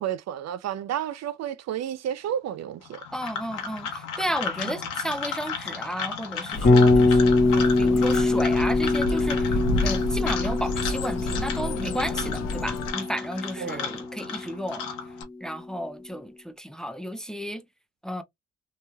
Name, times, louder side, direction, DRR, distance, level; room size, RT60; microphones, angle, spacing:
voice 1, 0.0-3.0 13.6-13.9, right 10 dB, 60° right, 0.5 m, -31 dB
sound 1, 2.8-15.2, left 6 dB, 90° left, 1.1 m, -35 dB
voice 2, 3.1-14.9 15.4-17.6 18.0-18.2, equal, ahead, 0.6 m, -33 dB
sound 2, 6.5-12.9, left 2 dB, 60° left, 0.8 m, -30 dB
Bass guitar, 6.6-14.7, left 2 dB, 30° left, 1.2 m, -23 dB
3.1 x 2.8 x 2.3 m
cardioid pair, 90°, 30 cm